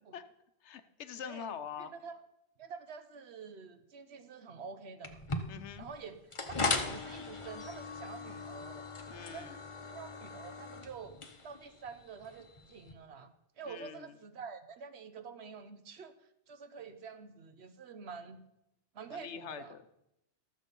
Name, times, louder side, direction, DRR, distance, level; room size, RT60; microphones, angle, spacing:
voice 1, 0.6-1.9 5.5-5.8 9.1-9.6 13.7-14.2 19.1-19.8, left 8 dB, 80° left, 11 dB, 1.0 m, -44 dB
voice 2, 1.2-2.2 2.6-5.2 5.8-8.9 9.3-9.6 9.9-11.2 11.4-16.2 16.5-18.4 18.9-19.8, right 5 dB, 70° right, 10 dB, 1.1 m, -47 dB
sound 1, 5.0-12.9, left 3 dB, 30° left, 0.9 m, -39 dB
13.0 x 7.4 x 5.3 m, 0.83 s
omnidirectional pair, 1.2 m